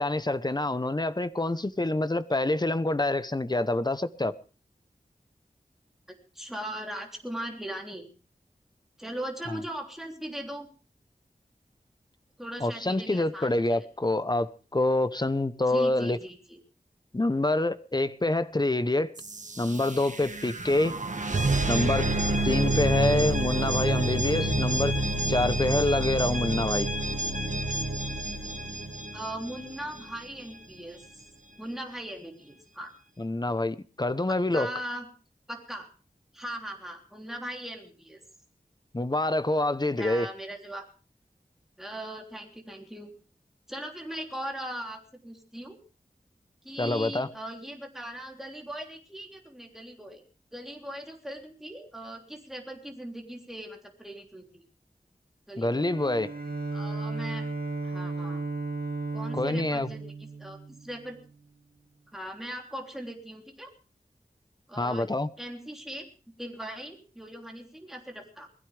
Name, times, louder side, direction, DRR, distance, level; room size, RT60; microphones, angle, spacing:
voice 1, 0.0-4.3 9.5-9.6 12.6-16.2 17.1-19.1 19.6-21.0 21.7-22.1 22.4-24.9 25.3-26.9 33.2-34.7 38.9-40.3 46.8-47.3 55.6-56.3 59.3-59.9 64.8-65.3, left 2 dB, 25° left, 1.0 m, -26 dB
voice 2, 6.3-8.1 9.0-10.7 12.4-13.9 15.7-16.6 29.1-31.0 31.6-32.9 34.5-35.1 35.5-35.9 36.3-38.2 40.0-40.8 41.8-43.1 43.7-45.8 46.6-50.2 50.5-54.6 55.5-55.9 56.7-57.5 57.8-58.4 59.1-61.2 62.1-63.7 64.7-65.1 65.4-66.1 66.4-68.5, right 1 dB, ahead, 3.4 m, -39 dB
sound 1, 19.2-30.0, right 2 dB, 55° right, 1.6 m, -28 dB
Bowed string instrument, 55.7-61.2, right 3 dB, 75° right, 2.4 m, -35 dB
21.5 x 15.5 x 3.5 m
wide cardioid pair, 65°, 15 cm